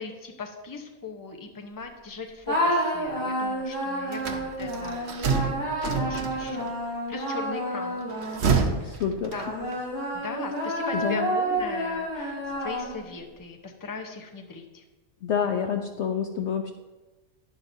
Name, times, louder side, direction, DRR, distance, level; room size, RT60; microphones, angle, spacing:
voice 1, 0.0-5.1 5.8-6.7 7.1-8.0 9.3-9.5 10.1-14.8, left 4 dB, 20° left, 3 dB, 0.7 m, -39 dB
sound 1, 2.5-8.7 9.3-13.2, right 1 dB, 35° left, 4.0 m, -30 dB
sound 2, 4.1-6.7 8.0-9.8, right 5 dB, 50° right, 1.0 m, -28 dB
voice 2, 8.8-9.3 10.9-11.3 15.2-16.7, left 7 dB, 60° left, 5 dB, 0.8 m, -28 dB
11.0 x 10.5 x 2.7 m, 1.1 s
omnidirectional pair, 1.5 m